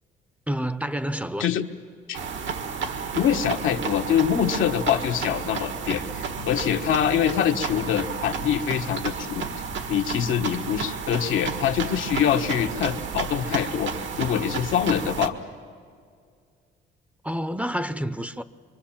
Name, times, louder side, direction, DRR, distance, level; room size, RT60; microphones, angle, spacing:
voice 1, 0.5-1.5 17.2-18.4, equal, 5° right, 0.7 m, -28 dB
sound 1, 2.1-15.3, right 6 dB, 75° right, 1.8 m, -32 dB
voice 2, 3.1-9.4 9.9-15.3, left 9 dB, 80° left, 1.4 m, -24 dB
25.0 x 24.5 x 7.4 m
cardioid pair, 90°, 20 cm